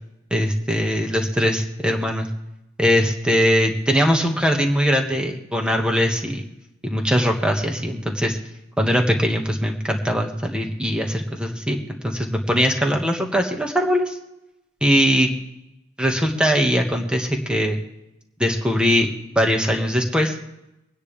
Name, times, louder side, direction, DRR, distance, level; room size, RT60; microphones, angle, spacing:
voice 1, 0.3-2.3 2.8-6.4 6.8-8.4 8.8-14.2 14.8-15.3 16.0-17.8 18.4-20.4, equal, 5° right, 2 dB, 1.8 m, -21 dB
25.5 x 9.8 x 3.5 m, 0.91 s
head